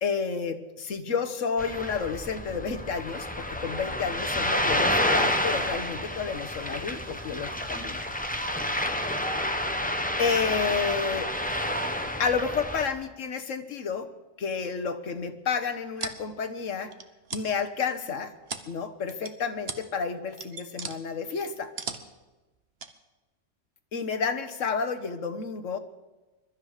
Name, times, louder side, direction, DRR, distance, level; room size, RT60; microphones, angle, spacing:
voice 1, 0.0-8.0 10.2-11.3 12.2-14.1 14.4-16.9 17.3-18.3 18.6-21.7 23.9-25.8, left 5 dB, 75° left, 9 dB, 1.5 m, -30 dB
Ocean, 1.6-12.9, left 1 dB, 5° left, 1.2 m, -29 dB
sound 1, 15.6-16.2 16.9-17.5 18.0-18.8 19.1-19.3 19.6-19.8 20.1-21.0 21.4-22.2 22.8-22.9, right 5 dB, 55° right, 1.2 m, -37 dB
22.0 x 12.5 x 5.0 m, 1.1 s
omnidirectional pair, 1.3 m